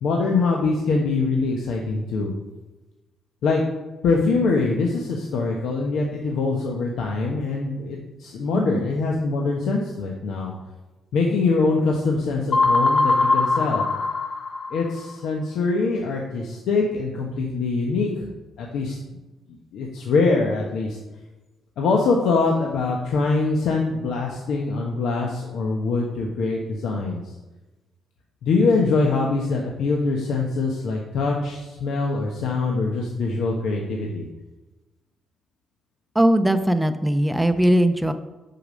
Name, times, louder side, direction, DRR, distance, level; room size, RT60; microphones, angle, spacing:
voice 1, 0.0-2.3 3.4-3.6 4.0-10.5 11.1-13.8 14.7-18.3 18.6-19.0 19.7-21.0 21.8-27.2 28.4-34.3, left 3 dB, 80° left, 0 dB, 1.0 m, -23 dB
sound 1, 12.5-15.1, left 3 dB, 55° left, 1.0 m, -21 dB
voice 2, 36.1-38.1, right 1 dB, 10° right, 9 dB, 0.6 m, -19 dB
6.7 x 6.0 x 5.1 m, 1.1 s
cardioid pair, 90°, 0 cm